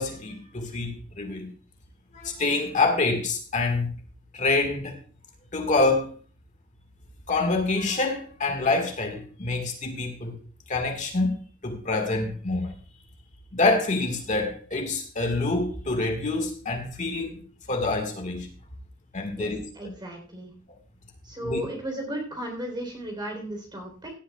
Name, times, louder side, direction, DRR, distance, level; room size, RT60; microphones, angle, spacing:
voice 1, 0.0-1.5 2.1-3.9 4.3-5.0 5.5-6.1 7.3-10.3 10.7-12.7 13.5-17.4 17.7-18.5 19.1-19.9 21.4-21.6, left 3 dB, 40° left, 4 dB, 1.7 m, -26 dB
voice 2, 19.4-20.5 21.2-24.1, right 1 dB, 20° right, 2 dB, 3.7 m, -35 dB
17.0 x 11.5 x 2.3 m, 0.40 s
head